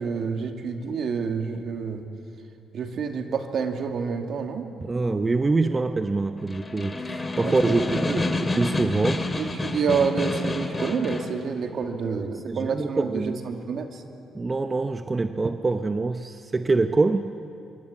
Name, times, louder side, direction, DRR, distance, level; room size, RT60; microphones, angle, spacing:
voice 1, 0.0-2.1 2.7-4.7 7.4-8.2 9.3-14.0, right 5 dB, 60° right, 4 dB, 2.4 m, -28 dB
voice 2, 4.8-9.3 12.1-13.4 14.3-17.4, right 3 dB, 25° right, 8 dB, 0.8 m, -25 dB
Snare drum, 6.4-11.4, left 2 dB, 25° left, 2.4 m, -28 dB
25.0 x 23.5 x 8.6 m, 2.6 s
cardioid pair, 90°, 0 cm